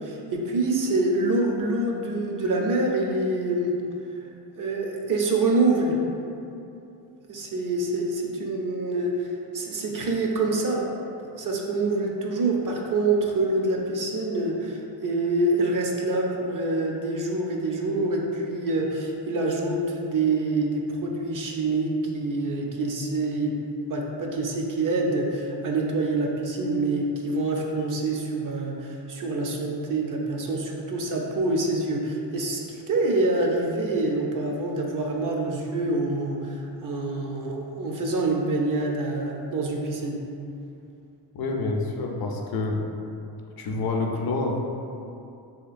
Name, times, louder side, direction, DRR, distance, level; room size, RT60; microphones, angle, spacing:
voice 1, 0.0-3.7 4.6-6.0 7.3-10.8 11.4-23.6 23.8-40.2, right 2 dB, 45° right, 0 dB, 0.5 m, -26 dB
voice 2, 41.3-42.8 43.6-44.6, left 3 dB, 55° left, 1 dB, 0.5 m, -27 dB
3.4 x 2.8 x 2.4 m, 2.7 s
cardioid pair, 75°, 44 cm